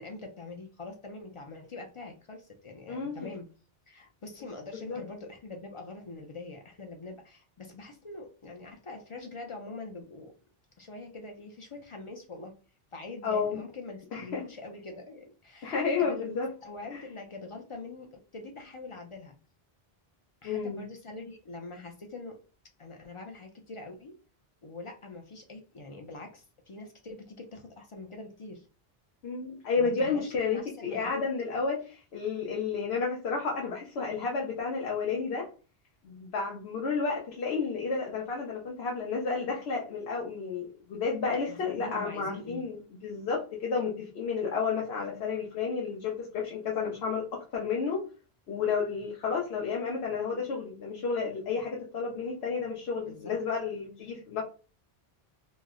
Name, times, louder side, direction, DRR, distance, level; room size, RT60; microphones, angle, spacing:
voice 1, 0.0-3.5 3.9-10.3 10.8-12.6 12.9-16.4 16.6-19.3 20.4-22.4 22.8-24.2 24.6-28.7 29.8-31.3 41.5-42.7 53.1-53.3 54.0-54.1, left 3 dB, 45° left, 3 dB, 0.4 m, -44 dB
voice 2, 2.9-3.3 4.9-5.0 13.2-13.6 14.1-14.4 15.6-16.5 16.9-17.0 20.4-20.8 29.2-35.5 36.0-48.0 48.5-54.4, left 5 dB, 85° left, -2 dB, 1.0 m, -31 dB
3.1 x 2.0 x 3.5 m, 0.35 s
omnidirectional pair, 1.0 m